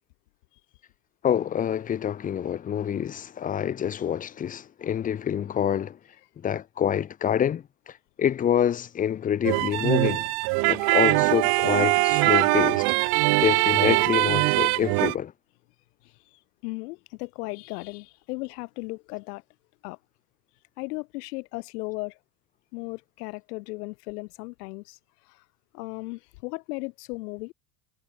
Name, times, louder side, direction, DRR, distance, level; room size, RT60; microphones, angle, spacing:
voice 1, 1.2-6.0 6.4-10.3 10.7-12.9 13.4-15.3, left 9 dB, 20° left, 0.7 m, -26 dB
sound 1, 9.4-15.1, right 30 dB, 55° right, 1.3 m, -22 dB
voice 2, 16.0-19.4 19.8-20.0 20.8-22.2 22.7-25.0 25.2-25.4 25.7-27.5, left 25 dB, 80° left, 3.8 m, -36 dB
cardioid pair, 165°, 46 cm